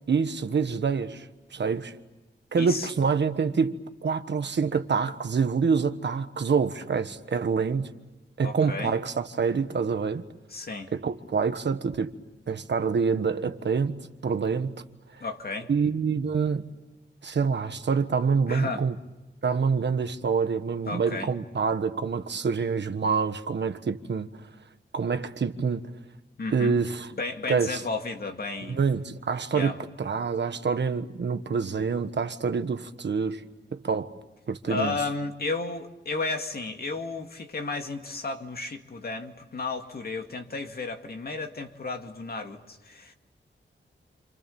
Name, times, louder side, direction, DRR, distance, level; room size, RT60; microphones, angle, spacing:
voice 1, 0.1-1.3 1.5-1.9 2.5-7.9 8.4-10.2 10.9-12.1 12.5-14.7 15.1-15.2 15.7-16.6 17.2-18.9 19.4-24.3 24.9-25.9 26.5-27.1 27.5-27.8 28.7-33.4 33.7-34.1 34.5-35.0, right 5 dB, 65° right, 1.4 m, -26 dB
voice 2, 2.6-2.9 8.4-9.0 10.5-10.9 15.2-15.7 18.5-18.8 20.9-21.3 26.4-26.8 27.1-28.8 29.5-29.8 34.7-43.1, left 3 dB, 55° left, 2.2 m, -33 dB
28.5 x 27.5 x 7.2 m
wide cardioid pair, 140°, 19 cm